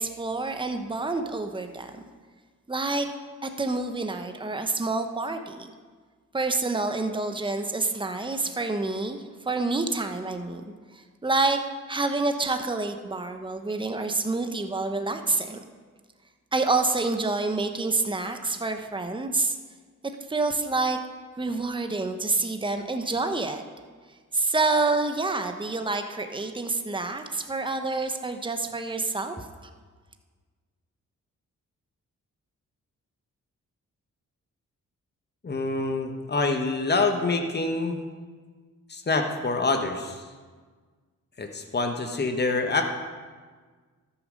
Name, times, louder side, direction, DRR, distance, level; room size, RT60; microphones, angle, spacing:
voice 1, 0.0-2.1 2.7-3.1 3.4-5.7 6.3-15.6 16.5-19.6 20.3-21.0 21.4-23.6 24.3-29.5, right 3 dB, 15° right, 7 dB, 1.0 m, -28 dB
voice 2, 35.4-38.0 38.9-40.2 41.4-42.9, left 3 dB, 30° left, 4 dB, 1.3 m, -26 dB
13.0 x 7.3 x 5.4 m, 1.5 s
cardioid pair, 55°, 32 cm